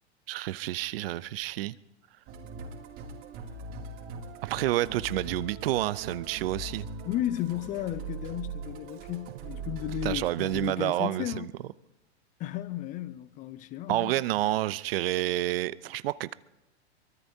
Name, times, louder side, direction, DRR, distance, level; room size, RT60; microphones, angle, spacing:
voice 1, 0.3-1.8 4.4-6.9 10.0-11.5 13.9-16.3, right 15 dB, 55° right, 0.6 m, -29 dB
Musical instrument, 2.3-10.7, right 4 dB, 40° right, 2.7 m, -41 dB
voice 2, 7.0-11.5 12.4-14.1, left 13 dB, 25° left, 0.4 m, -34 dB
24.0 x 22.0 x 2.7 m
hypercardioid pair, 115°, 34 cm